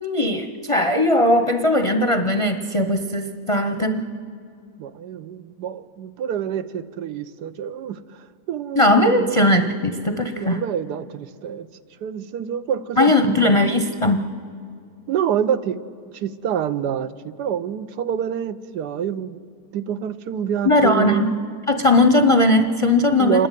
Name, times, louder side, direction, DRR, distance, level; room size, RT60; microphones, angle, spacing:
voice 1, 0.0-4.0 8.7-10.6 13.0-14.2 20.6-21.3 21.7-23.5, left 1 dB, 30° left, 0.6 m, -18 dB
voice 2, 4.8-8.0 8.5-9.3 10.4-11.7 12.0-13.4 15.1-15.8 16.1-17.1 17.4-19.4 19.7-21.4 23.2-23.5, right 8 dB, 90° right, 1.3 m, -26 dB
27.0 x 11.0 x 9.1 m
omnidirectional pair, 1.7 m